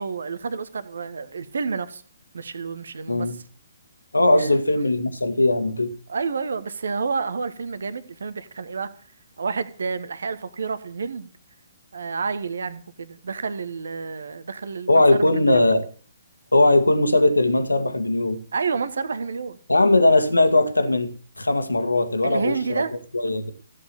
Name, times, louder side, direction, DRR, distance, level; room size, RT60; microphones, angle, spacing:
voice 1, 0.0-2.0 2.3-3.3 4.3-4.6 6.1-8.9 9.4-11.3 11.9-15.0 15.3-15.7 18.5-19.6 22.2-22.9, right 5 dB, 60° right, 1.3 m, -29 dB
voice 2, 4.1-5.9 14.9-15.8 16.5-18.4 19.7-23.5, left 2 dB, 80° left, 1.8 m, -19 dB
15.0 x 8.6 x 7.0 m
figure-of-eight pair, 130°, 0 cm